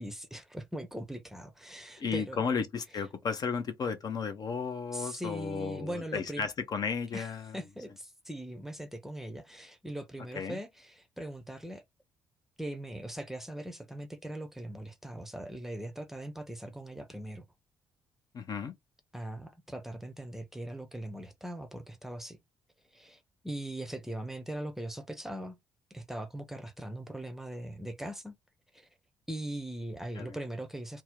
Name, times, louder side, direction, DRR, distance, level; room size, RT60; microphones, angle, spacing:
voice 1, 0.0-2.4 2.9-3.0 4.9-6.5 7.1-11.8 12.6-17.4 19.1-22.4 22.9-25.6 25.9-28.4 28.7-28.9 29.3-31.0, right 1 dB, 5° right, 0.7 m, -40 dB
voice 2, 2.0-7.6 10.3-10.6 18.3-18.7 30.2-30.4, left 5 dB, 40° left, 0.6 m, -34 dB
2.7 x 2.0 x 3.4 m
figure-of-eight pair, 45°, 10 cm